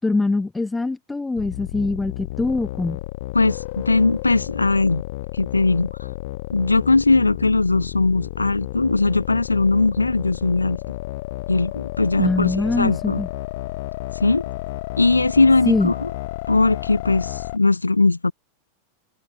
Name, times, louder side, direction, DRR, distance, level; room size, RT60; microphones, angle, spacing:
voice 1, 0.0-3.0 12.2-13.3 15.7-15.9, left 3 dB, 10° left, 4.4 m, -23 dB
sound 1, 1.4-17.6, left 19 dB, 50° left, 1.5 m, -32 dB
voice 2, 3.3-5.0 5.3-6.0 6.5-10.8 11.5-13.2 14.2-14.5 15.0-16.1 16.5-18.3, left 3 dB, 80° left, 1.6 m, -19 dB
figure-of-eight pair, 90°, 0 cm